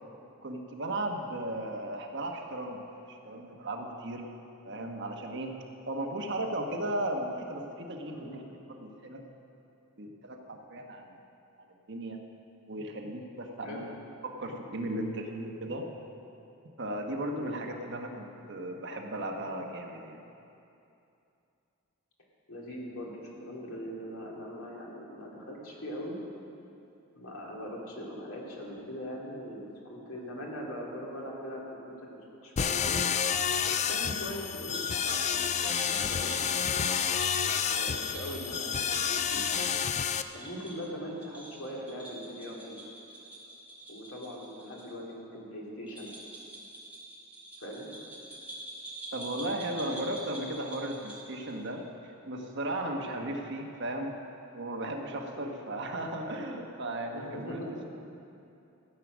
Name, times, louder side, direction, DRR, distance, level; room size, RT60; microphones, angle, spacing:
voice 1, 0.4-2.8 3.1-4.3 4.6-5.5 5.9-8.4 8.7-9.2 10.0-11.1 11.9-12.2 12.7-13.9 14.2-15.9 16.8-20.2 49.1-54.1 54.5-57.6, right 1 dB, 55° right, 2 dB, 1.2 m, -36 dB
voice 2, 8.1-8.5 13.6-13.8 17.3-17.5 22.5-26.2 27.2-32.2 32.4-33.0 33.6-37.0 37.7-39.7 40.3-42.8 43.9-46.1 47.6-47.9 53.1-53.3 55.3-55.5 57.1-57.8, equal, 75° left, -2 dB, 2.5 m, -41 dB
sound 1, 32.6-40.2, left 7 dB, 30° left, 0.3 m, -29 dB
sound 2, 34.7-44.8 45.1-45.2 45.9-51.6, right 1 dB, 5° right, 2.3 m, -44 dB
15.0 x 8.7 x 6.2 m, 2.7 s
head